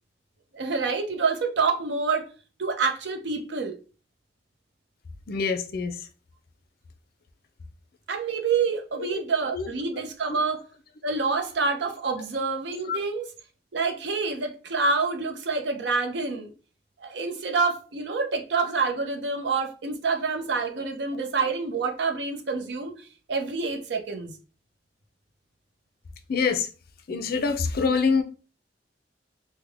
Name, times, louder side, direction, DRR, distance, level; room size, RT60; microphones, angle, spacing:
voice 1, 0.5-2.3 2.6-3.8 8.1-10.6 11.0-13.3 13.7-16.5 17.0-24.4, right 4 dB, 75° right, 0.6 m, -27 dB
voice 2, 5.3-6.0 9.0-9.2 9.5-9.7 10.3-10.4 12.9-13.0 20.8-20.9 26.3-26.7 27.1-28.2, left 5 dB, 60° left, 0.5 m, -25 dB
3.5 x 2.1 x 3.4 m
head